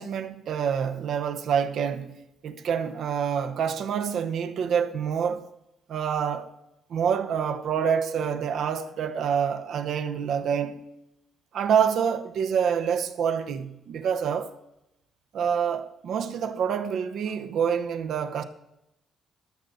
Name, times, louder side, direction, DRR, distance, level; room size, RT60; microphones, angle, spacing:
voice 1, 0.0-2.2 2.4-5.5 5.9-6.5 6.9-10.8 11.5-14.5 15.3-18.4, right 7 dB, 70° right, 0.8 m, -27 dB
13.0 x 6.8 x 5.4 m
cardioid pair, 90°, 0 cm